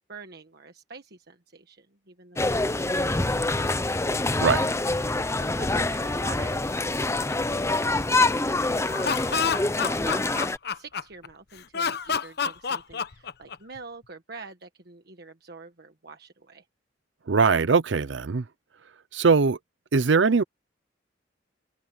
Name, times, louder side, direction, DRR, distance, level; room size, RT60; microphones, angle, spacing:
voice 1, 0.0-4.0 5.3-9.7 10.0-16.7, right 4 dB, 60° right, 1.4 m, -47 dB
sound 1, 2.4-10.6, left 2 dB, 15° left, 0.7 m, -25 dB
Laughter, 8.8-11.3 11.7-13.8, left 6 dB, 60° left, 1.0 m, -28 dB
voice 2, 17.3-18.4 19.1-19.6 19.9-20.4, right 4 dB, 75° right, 0.6 m, -21 dB
head